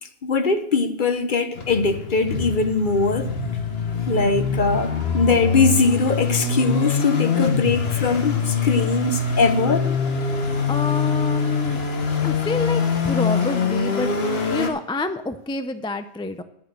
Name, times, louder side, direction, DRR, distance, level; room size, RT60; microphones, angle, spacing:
voice 1, 0.2-3.3 4.1-9.9, left 4 dB, 50° left, 1.0 m, -21 dB
sound 1, 1.6-14.7, left 5 dB, 70° left, 1.5 m, -24 dB
voice 2, 10.7-11.8 12.2-14.1 14.5-16.4, left 2 dB, 5° left, 0.4 m, -28 dB
11.0 x 7.4 x 6.6 m
omnidirectional pair, 1.1 m